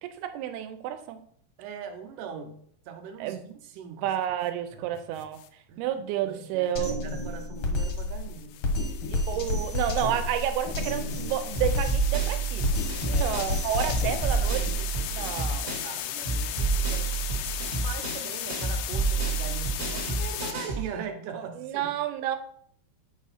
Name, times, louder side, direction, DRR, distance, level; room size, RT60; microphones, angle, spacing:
voice 1, 0.0-1.2 3.2-3.4 4.0-5.4 5.8-7.0 9.1-12.7 13.2-15.7 21.6-22.4, right 11 dB, 90° right, 8 dB, 2.7 m, -30 dB
voice 2, 1.6-4.1 4.7-5.3 5.7-8.9 9.3-9.4 13.1-13.6 14.3-14.7 15.0-17.5 17.8-21.9, right 6 dB, 70° right, 5 dB, 2.1 m, -41 dB
sound 1, 5.2-5.5 7.6-20.5, left 12 dB, 85° left, 2.5 m, -37 dB
Drum kit, 6.7-14.7, left 2 dB, 60° left, 1.4 m, -30 dB
sound 2, 11.5-16.0 16.2-20.9, right 4 dB, 50° right, 0.7 m, -29 dB
8.8 x 4.9 x 4.2 m, 0.62 s
omnidirectional pair, 4.4 m